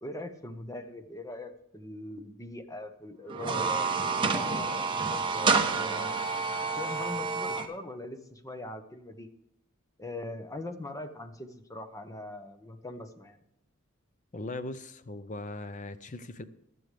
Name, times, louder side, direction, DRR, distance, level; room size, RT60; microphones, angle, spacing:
voice 1, 0.0-3.9 4.3-6.2 6.8-9.3 10.0-13.4, left 1 dB, 15° left, 8 dB, 1.0 m, -41 dB
sound 1, 3.3-7.7, right 4 dB, 25° right, 1.1 m, -28 dB
voice 2, 14.3-16.4, left 2 dB, 35° left, 12 dB, 0.7 m, -39 dB
15.5 x 11.0 x 3.4 m, 0.82 s
head